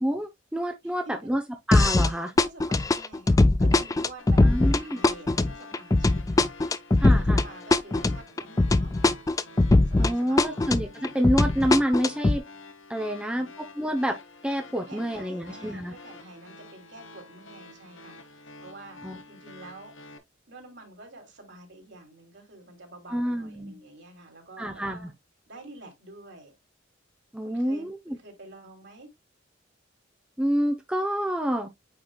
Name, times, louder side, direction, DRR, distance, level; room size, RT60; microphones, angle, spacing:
voice 1, 0.0-1.4 1.7-2.3 4.4-5.0 7.0-7.4 10.0-12.4 12.9-13.5 13.8-14.2 14.4-15.9 19.0-19.2 23.1-23.8 24.6-25.1 27.3-28.2 30.4-31.7, equal, 5° right, 0.7 m, -28 dB
voice 2, 0.8-1.3 2.3-6.4 7.1-9.0 9.8-10.6 13.0-13.5 14.7-19.9 20.5-25.1 25.5-26.5 27.4-29.1, right 2 dB, 60° right, 3.0 m, -48 dB
sound 1, 1.7-2.1 2.4-10.1 10.4-12.4, left 2 dB, 15° left, 0.3 m, -21 dB
sound 2, 4.2-20.2, left 3 dB, 70° left, 1.2 m, -48 dB
8.8 x 4.8 x 2.3 m
head